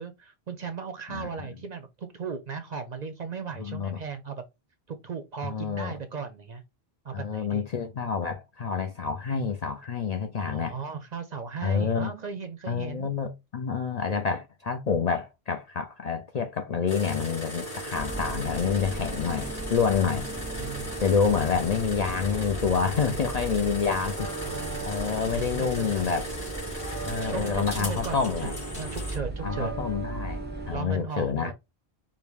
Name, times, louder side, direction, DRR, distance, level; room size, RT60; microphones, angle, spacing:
voice 1, 0.0-4.4 4.9-6.6 7.0-7.6 10.4-13.1 20.0-20.2 20.5-21.0 24.0-24.9 25.3-26.2 27.0-29.8 30.7-31.5, right 5 dB, 55° right, 0.5 m, -37 dB
voice 2, 3.6-4.0 5.4-5.9 7.1-10.8 11.6-12.1 12.7-20.3 21.0-24.3 24.8-26.3 27.1-28.5 29.4-31.5, left 6 dB, 55° left, 0.5 m, -28 dB
sound 1, 16.9-29.2, right 1 dB, 35° left, 2.7 m, -37 dB
sound 2, 17.9-30.8, right 2 dB, 10° right, 0.7 m, -37 dB
4.7 x 2.2 x 3.4 m
omnidirectional pair, 1.1 m